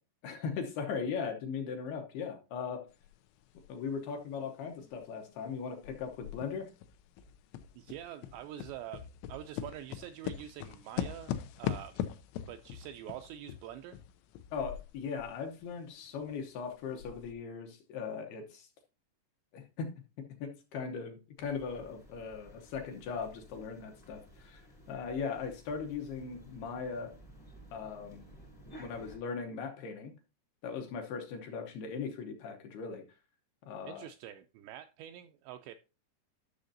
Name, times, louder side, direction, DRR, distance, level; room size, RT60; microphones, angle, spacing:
voice 1, 0.2-2.9 3.7-6.7 14.5-18.7 19.5-19.9 20.2-24.6 24.9-27.1 27.7-28.3 28.8-30.1 30.6-33.0 33.7-34.1, left 5 dB, 75° left, 4 dB, 2.4 m, -39 dB
sound 1, 3.0-3.1 3.6-5.5 5.8-15.4 15.6-15.7 16.2-16.3 16.8-17.3, left 10 dB, 90° left, 3.0 m, -41 dB
voice 2, 7.8-12.0 12.5-14.0 33.8-35.8, right 11 dB, 85° right, 7 dB, 2.5 m, -46 dB
sound 2, 21.4-29.2, equal, 15° left, 0.7 m, -55 dB
11.5 x 6.3 x 2.6 m, 0.31 s
omnidirectional pair, 5.4 m